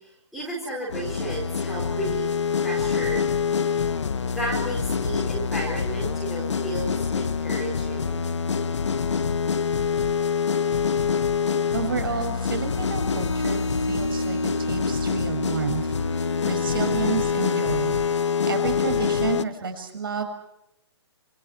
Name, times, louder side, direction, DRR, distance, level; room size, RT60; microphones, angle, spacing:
voice 1, 0.0-2.3 2.6-3.2 4.2-8.2, right 1 dB, ahead, -6 dB, 4.5 m, -33 dB
sound 1, 0.9-19.4, left 6 dB, 90° left, 1.1 m, -25 dB
voice 2, 11.7-15.8 16.1-20.2, right 5 dB, 50° right, 7 dB, 6.2 m, -30 dB
29.0 x 27.0 x 4.6 m, 0.80 s
hypercardioid pair, 180°, 15 cm